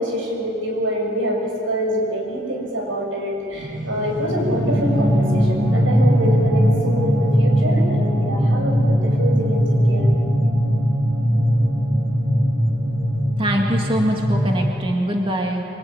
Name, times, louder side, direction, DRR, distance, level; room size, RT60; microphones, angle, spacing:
voice 1, 0.0-9.6 9.9-10.1, equal, 90° right, 1 dB, 7.0 m, -25 dB
sound 1, 3.5-14.6, equal, 65° right, 3.9 m, -19 dB
voice 2, 13.4-15.6, equal, 25° right, 0 dB, 2.2 m, -23 dB
25.5 x 23.5 x 9.8 m, 2.9 s
head